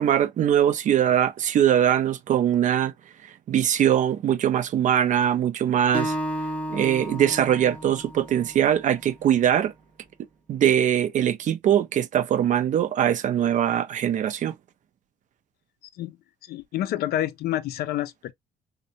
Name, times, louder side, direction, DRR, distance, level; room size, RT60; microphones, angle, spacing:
voice 1, 0.0-2.9 3.5-6.2 6.7-9.7 10.5-14.5, right 10 dB, 50° right, 0.4 m, -22 dB
Acoustic guitar, 5.9-9.2, equal, 5° left, 0.5 m, -33 dB
voice 2, 16.5-18.3, left 12 dB, 65° left, 0.4 m, -28 dB
2.6 x 2.1 x 2.7 m
cardioid pair, 110°, 17 cm